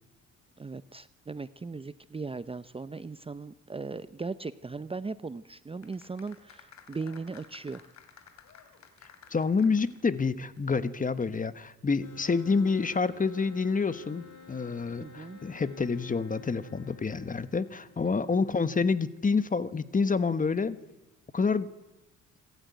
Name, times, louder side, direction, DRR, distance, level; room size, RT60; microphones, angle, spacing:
voice 1, 0.6-7.8 15.0-15.4 18.0-18.1, right 4 dB, 20° right, 14 dB, 0.7 m, -38 dB
sound 1, 5.8-10.3 10.6-10.7, left 7 dB, 65° left, 3.2 m, -54 dB
voice 2, 9.3-20.8 21.3-21.7, left 4 dB, 25° left, 14 dB, 1.3 m, -28 dB
sound 2, 12.0-18.4, left 6 dB, 85° left, 5.5 m, -51 dB
26.5 x 13.0 x 9.4 m, 0.99 s
cardioid pair, 90°, 30 cm